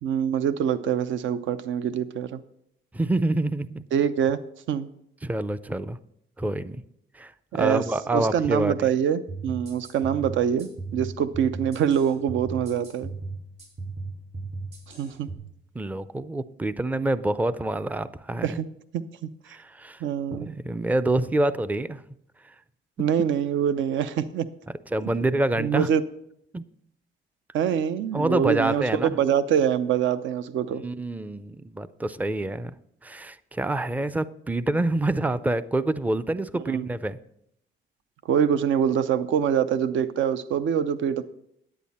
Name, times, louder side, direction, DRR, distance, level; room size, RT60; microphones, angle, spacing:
voice 1, 0.0-2.4 3.9-4.4 4.7-4.9 7.5-7.8 8.1-13.1 15.0-15.3 18.4-18.7 18.9-19.3 20.0-20.5 23.0-24.5 25.6-26.0 27.5-30.8 36.7-36.9 38.3-41.2, right 8 dB, 75° right, 13 dB, 0.6 m, -24 dB
voice 2, 2.9-3.8 5.2-6.0 6.4-6.8 7.1-8.9 15.8-18.6 19.5-20.0 20.3-22.0 24.9-25.9 26.5-26.6 28.1-29.2 30.7-32.7 33.0-37.2, right 2 dB, 10° right, 15 dB, 0.4 m, -27 dB
sound 1, 9.3-15.4, right 3 dB, 55° right, 4.5 m, -37 dB
10.0 x 8.5 x 4.2 m, 0.75 s
cardioid pair, 90°, 20 cm